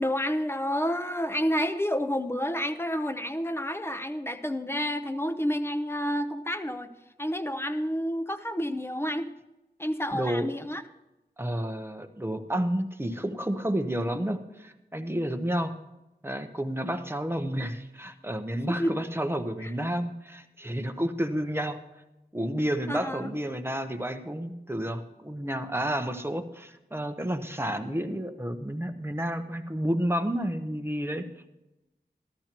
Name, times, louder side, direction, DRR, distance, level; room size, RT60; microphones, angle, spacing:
voice 1, 0.0-6.9 7.2-9.3 9.8-10.8 18.7-18.9 19.6-19.7 22.9-23.3, equal, 15° left, 9 dB, 0.8 m, -29 dB
voice 2, 10.1-10.5 11.4-15.7 16.2-21.8 22.3-31.2, equal, 15° right, 7 dB, 0.9 m, -30 dB
13.5 x 13.5 x 3.0 m, 0.97 s
wide cardioid pair, 50°, 18 cm